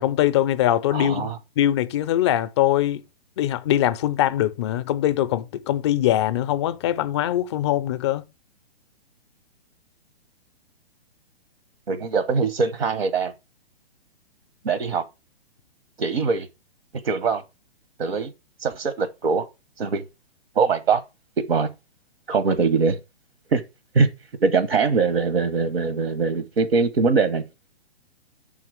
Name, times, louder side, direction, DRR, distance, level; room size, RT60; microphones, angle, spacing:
voice 1, 0.0-1.3 1.6-3.0 3.4-8.2, left 12 dB, 30° left, 0.4 m, -22 dB
voice 2, 0.9-1.4 11.9-13.3 14.6-15.0 16.0-16.5 17.0-17.4 18.0-18.3 18.6-19.4 19.8-20.0 20.6-21.0 21.5-21.7 22.3-23.0 23.5-23.6 23.9-24.1 24.4-27.4, right 5 dB, 75° right, 0.9 m, -22 dB
6.0 x 3.7 x 5.9 m
figure-of-eight pair, 125°, 31 cm